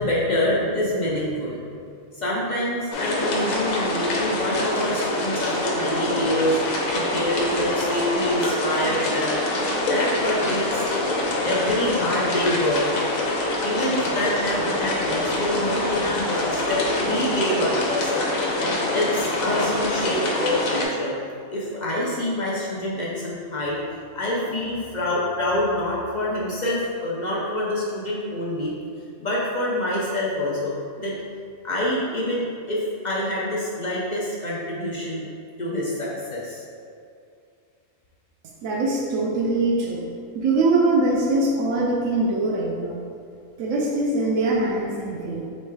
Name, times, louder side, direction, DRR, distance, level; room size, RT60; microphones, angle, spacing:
voice 1, 0.0-1.8 2.1-6.6 6.9-9.4 9.8-10.8 11.4-13.0 13.6-18.1 18.6-21.1 21.5-23.8 24.1-28.7 29.2-31.2 31.6-35.2 35.6-36.6, left 1 dB, 55° left, -5 dB, 0.5 m, -26 dB
sound 1, 2.9-20.9, left 2 dB, 85° left, 1.1 m, -25 dB
voice 2, 38.6-40.0 40.3-43.0 43.6-45.5, right 2 dB, 75° right, -3 dB, 0.9 m, -22 dB
3.2 x 3.1 x 4.6 m, 2.4 s
omnidirectional pair, 1.4 m